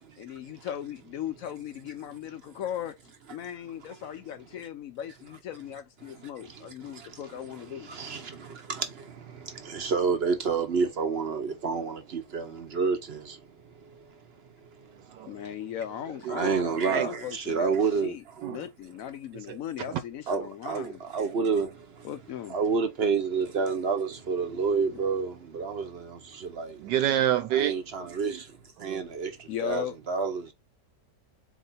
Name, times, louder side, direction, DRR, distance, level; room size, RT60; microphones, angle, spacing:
voice 1, 0.2-3.0 3.3-7.9 15.2-21.0 22.0-22.6 24.9-25.0 29.5-29.9, left 10 dB, 70° left, 0.8 m, -38 dB
voice 2, 6.5-7.1 7.7-13.4 16.3-18.2 20.3-21.7 22.5-26.8 27.5-28.5 28.8-30.5, right 5 dB, 50° right, 0.8 m, -29 dB
voice 3, 15.0-15.3 16.2-17.1 18.4-18.6 19.5-19.6 19.9-20.0 26.8-27.7 28.0-28.4 28.8-29.0, right 11 dB, 80° right, 1.2 m, -29 dB
4.4 x 3.0 x 3.9 m
omnidirectional pair, 1.9 m